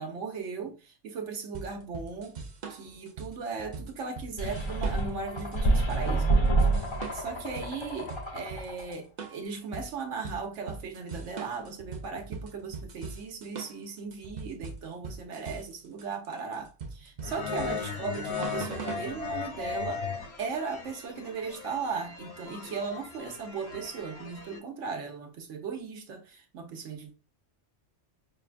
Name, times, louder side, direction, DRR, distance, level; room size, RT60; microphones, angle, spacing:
voice 1, 0.0-2.4 2.7-6.3 7.1-20.1 20.4-27.1, right 5 dB, 70° right, 1.1 m, -37 dB
sound 1, 1.5-19.1, right 5 dB, 50° right, 0.5 m, -41 dB
sound 2, 4.4-8.9, right 2 dB, 30° left, 0.6 m, -27 dB
sound 3, 17.2-24.6, left 6 dB, 60° left, 1.0 m, -37 dB
5.2 x 2.3 x 2.4 m
omnidirectional pair, 1.3 m